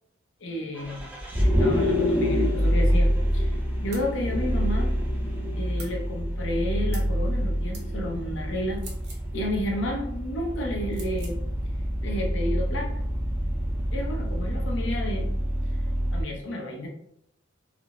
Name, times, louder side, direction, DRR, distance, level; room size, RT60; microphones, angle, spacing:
voice 1, 0.4-1.1 1.4-4.9 5.6-8.8 9.3-11.4 12.0-12.9 13.9-15.3 16.1-16.9, left 1 dB, 65° left, 0 dB, 0.6 m, -31 dB
Vehicle, 0.8-16.2, equal, 10° right, 0.4 m, -26 dB
sound 1, 3.9-4.1 5.8-6.0 6.9-7.1 7.7-7.9 8.7-9.3 10.9-11.4, right 4 dB, 55° right, 0.7 m, -44 dB
2.4 x 2.0 x 2.9 m, 0.74 s
head